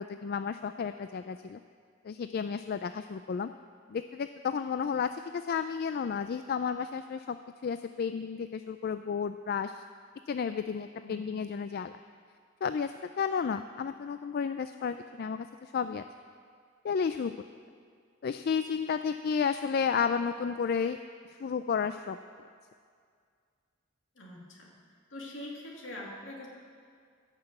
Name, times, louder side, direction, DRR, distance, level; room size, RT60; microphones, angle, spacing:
voice 1, 0.0-1.6 2.0-3.5 3.9-7.4 7.6-9.8 10.3-12.0 12.6-16.0 16.8-17.3 18.2-21.0 21.4-22.2, left 6 dB, 50° left, 10 dB, 0.3 m, -32 dB
voice 2, 24.2-24.7 25.1-26.5, left 1 dB, 70° left, -2 dB, 2.5 m, -43 dB
16.0 x 6.0 x 7.8 m, 2.1 s
head